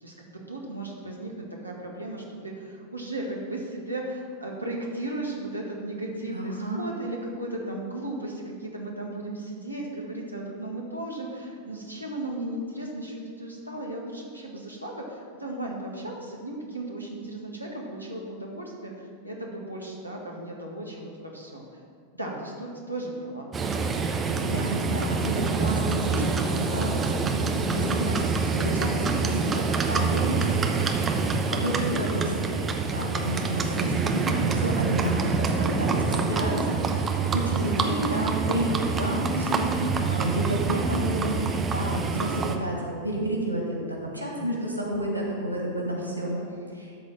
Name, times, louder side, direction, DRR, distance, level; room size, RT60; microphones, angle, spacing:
voice 1, 0.0-21.8 22.1-23.5 31.7-32.0 42.3-42.5 46.0-46.5, right 1 dB, 85° right, -2 dB, 1.7 m, -36 dB
voice 2, 6.3-6.8 24.4-42.3 42.6-46.4 46.8-46.9, right 1 dB, 90° left, -1 dB, 2.0 m, -30 dB
Livestock farm animals working animals, 23.5-42.6, right 4 dB, 20° right, 0.8 m, -26 dB
12.5 x 4.2 x 7.2 m, 2.2 s
figure-of-eight pair, 90°, 0 cm